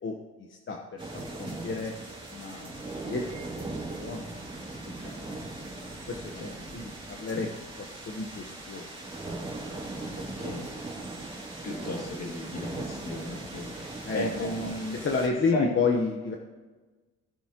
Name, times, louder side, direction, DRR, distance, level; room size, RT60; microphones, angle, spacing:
voice 1, 0.5-1.9 2.3-3.5 3.9-4.3 4.9-5.4 6.1-6.5 6.7-7.5 7.8-9.1 9.6-9.8 14.0-16.4, left 4 dB, 40° left, 2 dB, 1.2 m, -32 dB
sound 1, 1.0-15.3, right 2 dB, 15° right, 2.9 m, -39 dB
voice 2, 10.1-10.7 11.6-15.0 15.5-15.7, left 1 dB, 60° left, 1 dB, 2.4 m, -35 dB
18.0 x 7.1 x 3.0 m, 1.3 s
cardioid pair, 90°, 30 cm